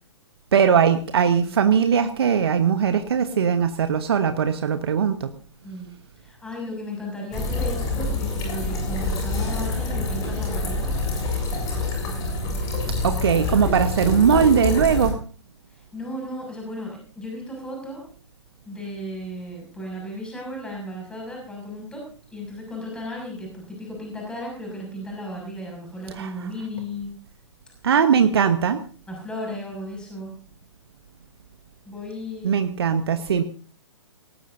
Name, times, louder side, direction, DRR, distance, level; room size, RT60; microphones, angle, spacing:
voice 1, 0.5-5.3 13.0-15.1 26.2-26.3 27.8-28.8 32.4-33.4, right 7 dB, 55° right, 9 dB, 1.2 m, -20 dB
voice 2, 6.2-11.0 15.7-18.0 18.6-22.0 22.3-27.1 29.1-30.3 31.9-32.6, left 1 dB, 5° left, -1 dB, 6.5 m, -35 dB
sound 1, 7.3-15.1, left 2 dB, 25° left, 7.3 m, -26 dB
19.0 x 18.5 x 2.7 m, 0.41 s
figure-of-eight pair, 120°, 15 cm